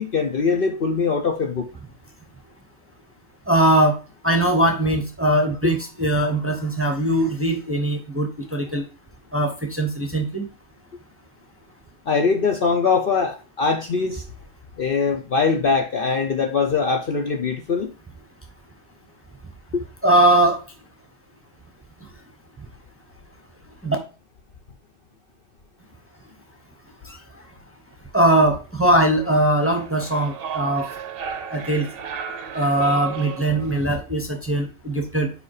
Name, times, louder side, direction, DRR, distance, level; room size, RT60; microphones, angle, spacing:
voice 1, 0.0-1.7 12.1-14.2 14.8-17.9 19.7-19.8, left 5 dB, 50° left, 0.8 m, -22 dB
voice 2, 3.5-4.0 4.2-8.8 9.3-10.5 20.0-20.6 23.8-24.0 27.1-27.2 28.1-30.9 31.5-31.9 32.5-35.3, right 1 dB, 10° right, 0.8 m, -20 dB
sound 1, 28.9-34.0, right 7 dB, 55° right, 0.8 m, -34 dB
5.1 x 4.9 x 4.8 m
omnidirectional pair, 1.4 m